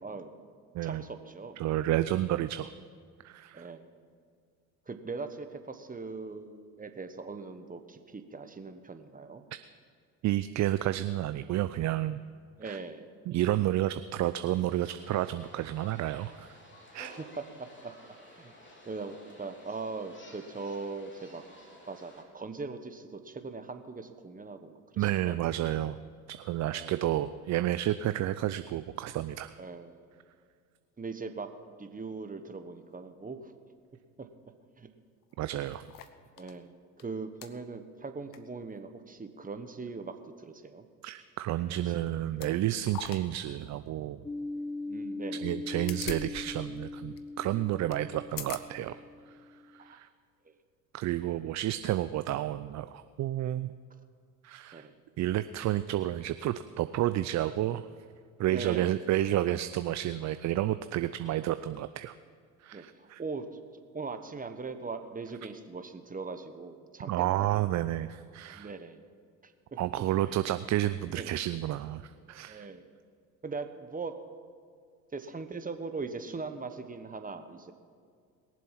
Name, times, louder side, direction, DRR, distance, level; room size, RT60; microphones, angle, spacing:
voice 1, 0.8-1.6 3.5-3.9 4.9-9.4 12.6-13.0 17.1-17.9 18.3-18.5 18.8-21.4 21.9-25.7 26.7-27.0 29.6-30.0 31.0-31.5 31.8-33.5 34.2-34.3 34.8-34.9 36.4-40.8 41.7-41.8 44.9-45.5 48.1-48.2 49.8-50.0 50.4-50.5 52.3-52.4 54.7-54.9 58.5-59.0 62.7-63.4 63.9-67.7 68.5-69.0 69.4-69.5 70.2-70.4 71.1-71.4 72.3-72.8 73.4-74.1 75.1-77.7, right 4 dB, 20° right, 8 dB, 1.3 m, -40 dB
voice 2, 1.6-2.7 3.2-3.7 10.2-12.2 12.6-12.8 13.3-16.5 16.9-17.1 25.0-26.0 26.3-29.6 35.4-35.9 41.0-44.2 45.4-49.0 49.3-49.4 49.7-50.1 50.9-53.7 54.4-54.9 55.2-57.9 58.4-62.1 62.6-63.2 67.1-68.7 69.8-72.7, right 13 dB, 40° right, 12 dB, 0.5 m, -30 dB
sound 1, 14.5-22.2, left 1 dB, 25° left, 3.3 m, -53 dB
sound 2, 34.9-35.0 35.2-36.6 37.0-37.1 37.4-37.5 38.1-38.4 38.7-38.8 41.5-41.7 42.3-42.5 42.8-43.2 43.6-43.7 45.5-46.4 46.7-46.8 47.2-47.3 47.9-48.0 48.3-48.7 49.3-49.4, left 10 dB, 50° left, 1.1 m, -43 dB
sound 3, 44.2-49.8, left 2 dB, 10° left, 0.5 m, -40 dB
21.5 x 7.6 x 5.9 m, 2.1 s
hypercardioid pair, 65°, 44 cm